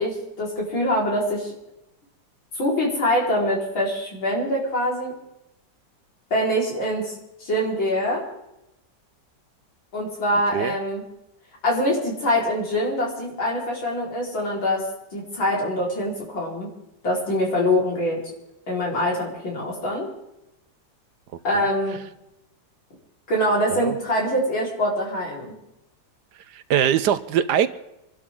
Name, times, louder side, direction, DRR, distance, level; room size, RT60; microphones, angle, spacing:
voice 1, 0.0-1.5 2.5-5.1 6.3-7.1 7.4-8.2 9.9-11.0 11.6-14.8 15.1-16.7 17.0-18.2 18.7-20.1 21.4-22.0 23.3-25.5, equal, 90° left, -3 dB, 5.0 m, -24 dB
voice 2, 26.5-27.7, right 9 dB, 70° right, 13 dB, 1.2 m, -21 dB
26.5 x 12.0 x 3.7 m, 0.90 s
omnidirectional pair, 2.1 m